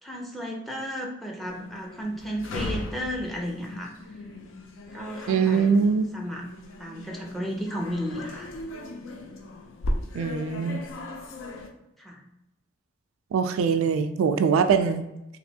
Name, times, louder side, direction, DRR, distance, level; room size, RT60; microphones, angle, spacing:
voice 1, 0.0-3.9 4.9-6.4 6.8-8.5 12.0-12.2, equal, ahead, 0 dB, 0.5 m, -33 dB
sound 1, 1.5-11.7, left 1 dB, 75° left, 0.5 m, -37 dB
voice 2, 5.3-6.0 10.1-10.8 13.3-15.0, right 6 dB, 85° right, 8 dB, 0.3 m, -22 dB
3.2 x 2.9 x 2.7 m, 0.92 s
head